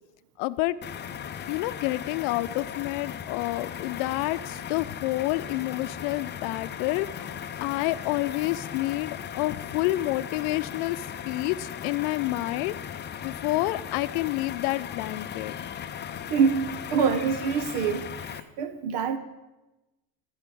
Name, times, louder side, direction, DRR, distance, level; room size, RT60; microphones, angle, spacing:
voice 1, 0.4-0.8 1.5-12.8 13.2-15.5, left 18 dB, 70° left, 15 dB, 0.7 m, -29 dB
sound 1, 0.8-18.4, left 8 dB, 25° left, 0.5 m, -37 dB
voice 2, 16.3-19.2, right 6 dB, 65° right, 11 dB, 1.1 m, -26 dB
14.5 x 5.1 x 8.4 m, 1.1 s
supercardioid pair, 115°, 47 cm